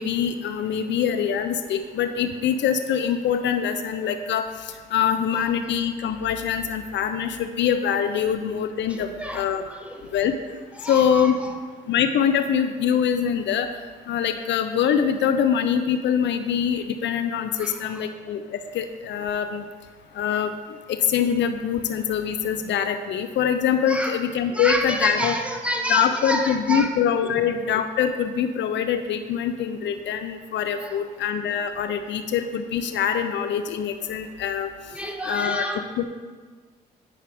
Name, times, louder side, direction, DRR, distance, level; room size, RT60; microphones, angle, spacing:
voice 1, 0.0-9.6 10.1-10.4 10.9-11.4 11.9-13.7 14.1-19.6 20.2-20.5 20.9-25.3 25.9-34.7 35.3-35.7 36.0-36.1, left 8 dB, 70° left, 9 dB, 0.5 m, -24 dB
voice 2, 8.9-10.2 10.8-11.5 17.5-18.1 23.9-24.1 24.5-26.9 27.2-27.3 30.8-31.0 34.9-35.9, equal, 5° right, 3 dB, 1.2 m, -29 dB
9.3 x 5.7 x 3.4 m, 1.5 s
supercardioid pair, 60°, 20 cm